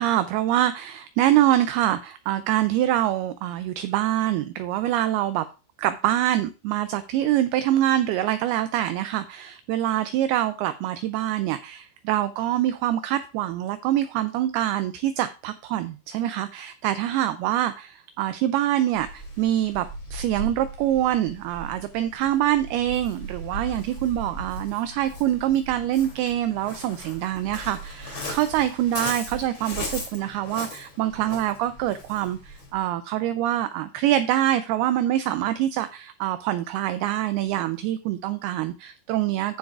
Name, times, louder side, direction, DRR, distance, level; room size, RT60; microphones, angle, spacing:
voice 1, 0.0-5.5 5.8-39.6, right 13 dB, 85° right, 11 dB, 2.2 m, -25 dB
Waves surf, 18.9-32.8, equal, 35° left, 2.9 m, -38 dB
14.0 x 6.4 x 2.4 m, 0.31 s
omnidirectional pair, 5.0 m